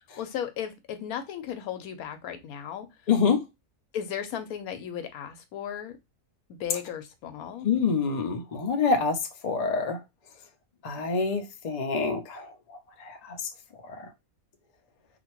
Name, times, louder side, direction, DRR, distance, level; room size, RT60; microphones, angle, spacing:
voice 1, 0.2-2.9 3.9-6.0 6.6-7.7, left 9 dB, 90° left, 8 dB, 1.1 m, -35 dB
voice 2, 3.1-3.4 7.6-9.2 9.4-10.0 10.8-12.5, left 5 dB, 55° left, 5 dB, 0.4 m, -25 dB
2.9 x 2.5 x 2.9 m, 0.22 s
omnidirectional pair, 1.5 m